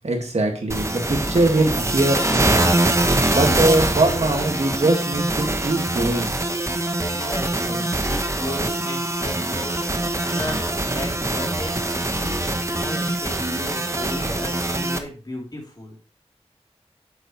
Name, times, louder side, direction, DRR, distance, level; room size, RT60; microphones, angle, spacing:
voice 1, 0.0-2.9 3.3-6.3, right 2 dB, 70° right, 2 dB, 2.0 m, -22 dB
sound 1, 0.7-15.0, right 1 dB, 25° right, 0.9 m, -23 dB
voice 2, 7.1-16.0, left 1 dB, 35° left, -1 dB, 3.3 m, -35 dB
8.0 x 7.7 x 3.2 m, 0.37 s
wide cardioid pair, 70°, 12 cm